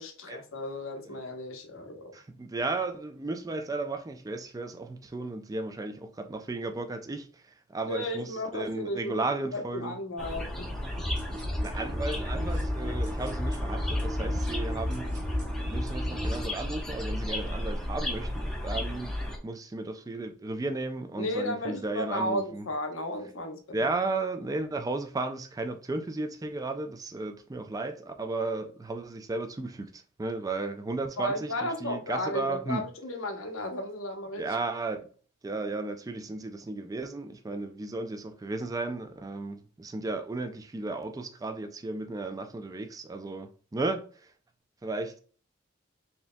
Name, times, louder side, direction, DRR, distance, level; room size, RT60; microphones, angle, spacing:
voice 1, 0.0-2.1 7.9-9.2 9.5-10.7 21.2-23.8 31.2-34.6, left 1 dB, 85° left, 0.9 m, -34 dB
voice 2, 2.1-7.4 7.7-10.0 11.6-15.2 15.6-19.1 19.4-22.7 23.7-32.9 34.4-35.1 35.4-44.0 44.8-45.2, right 2 dB, 20° right, 0.4 m, -34 dB
sound 1, 10.2-19.4, left 1 dB, 5° left, 0.8 m, -34 dB
sound 2, 11.0-16.4, left 1 dB, 40° right, 1.3 m, -33 dB
4.3 x 3.4 x 2.2 m
head